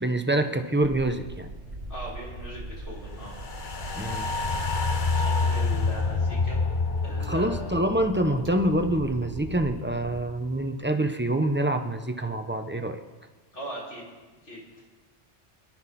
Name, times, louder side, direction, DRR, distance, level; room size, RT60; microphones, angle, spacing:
voice 1, 0.0-1.5 3.9-4.3 7.2-13.0, right 1 dB, 10° right, 6 dB, 0.9 m, -26 dB
sound 1, 0.8-10.4, right 2 dB, 80° right, 2.3 m, -40 dB
voice 2, 1.9-3.3 5.1-6.6 7.0-7.9 13.5-14.0 14.4-14.6, equal, 85° left, -6 dB, 6.3 m, -39 dB
sound 2, 3.2-9.6 10.0-10.1, left 4 dB, 45° left, 1.1 m, -28 dB
25.0 x 12.0 x 4.3 m, 1.3 s
omnidirectional pair, 1.2 m